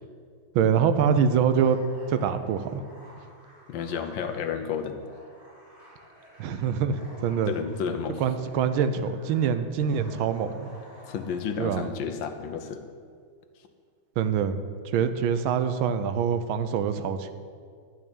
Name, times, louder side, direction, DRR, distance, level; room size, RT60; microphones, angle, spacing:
voice 1, 0.5-1.8 2.1-2.8 6.4-7.6 8.2-10.7 11.6-11.9 14.2-14.6 14.8-17.3, right 7 dB, 90° right, 10 dB, 1.5 m, -25 dB
sound 1, 1.4-11.6, equal, 30° right, 3.7 m, -51 dB
voice 2, 3.7-5.0 7.4-8.2 11.1-12.8, left 7 dB, 75° left, 7 dB, 1.5 m, -31 dB
11.0 x 5.8 x 8.8 m, 2.1 s
omnidirectional pair, 2.2 m